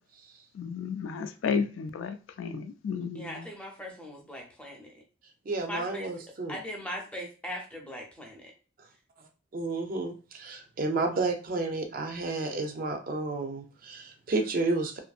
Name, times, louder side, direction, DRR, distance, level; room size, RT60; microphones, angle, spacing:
voice 1, 0.6-3.4, left 5 dB, 75° left, 0.3 m, -32 dB
voice 2, 3.1-4.9 5.7-6.1 6.5-8.4, equal, 5° left, 0.5 m, -39 dB
voice 3, 5.5-6.6 9.5-15.0, right 3 dB, 45° right, 0.4 m, -31 dB
2.6 x 2.6 x 2.3 m
head